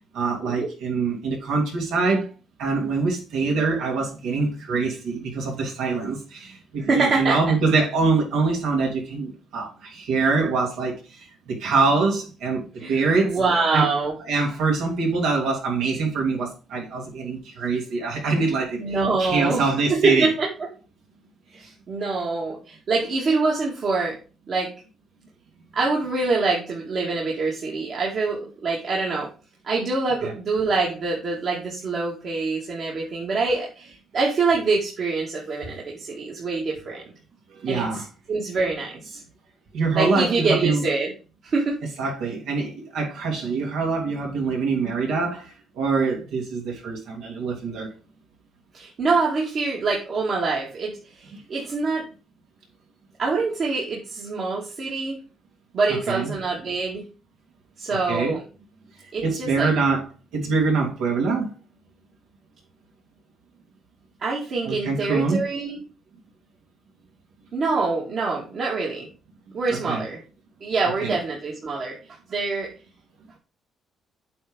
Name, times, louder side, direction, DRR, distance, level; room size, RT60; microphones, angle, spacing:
voice 1, 0.1-2.3 2.6-13.4 13.7-13.9 14.3-20.3 30.2-30.3 37.6-38.1 39.7-40.8 42.0-47.9 55.9-56.3 57.9-58.4 59.2-60.0 60.3-61.5 64.7-65.4 69.7-70.0 71.0-71.2, right 4 dB, 85° right, 2.7 m, -24 dB
voice 2, 6.9-7.4 12.8-14.1 18.8-20.5 21.5-24.2 24.5-24.7 25.7-29.3 29.6-37.0 37.7-39.2 39.9-41.1 41.4-41.8 48.7-52.0 53.2-55.2 55.7-57.0 57.8-58.4 59.1-59.7 64.2-65.8 67.5-69.1 69.5-70.2 70.6-72.0 72.3-72.7, right 3 dB, 55° right, 2.2 m, -25 dB
8.5 x 3.5 x 5.5 m
cardioid pair, 90°, 0 cm